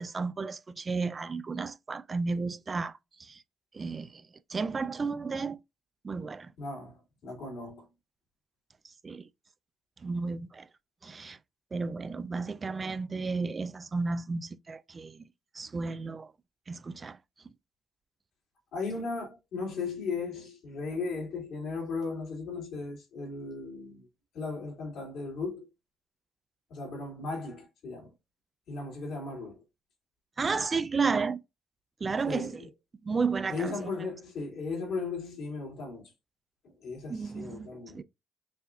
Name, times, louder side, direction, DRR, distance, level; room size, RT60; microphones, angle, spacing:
voice 1, 0.0-3.4 3.7-5.6 6.0-6.5 9.0-9.3 10.0-10.7 11.0-11.4 11.7-15.3 15.5-16.3 16.7-17.2 30.4-31.4 32.0-32.6 33.0-33.9 37.1-37.7 37.9-38.0, right 4 dB, 35° right, 0.3 m, -33 dB
voice 2, 6.6-7.9 18.7-24.1 24.3-25.7 26.7-28.1 28.7-29.6 32.3-32.7 33.5-36.1 36.6-38.0, left 4 dB, 75° left, 2.5 m, -36 dB
5.5 x 2.5 x 2.4 m
cardioid pair, 90°, 0 cm